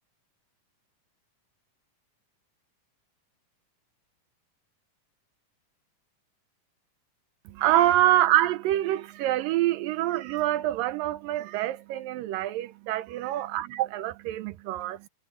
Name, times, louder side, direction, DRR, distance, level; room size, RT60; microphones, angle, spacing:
voice 1, 7.5-15.1, right 14 dB, 85° right, 2.5 m, -26 dB
omnidirectional pair, 3.9 m